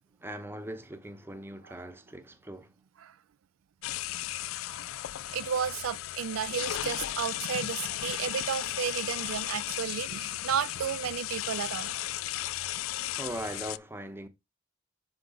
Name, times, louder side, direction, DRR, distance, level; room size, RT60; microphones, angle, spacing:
voice 1, 0.2-2.7 13.2-14.3, right 1 dB, 10° right, 0.9 m, -40 dB
sound 1, 3.8-13.8, left 14 dB, 80° left, 0.3 m, -35 dB
voice 2, 5.3-12.1, right 8 dB, 90° right, 0.4 m, -33 dB
6.4 x 4.4 x 4.0 m
head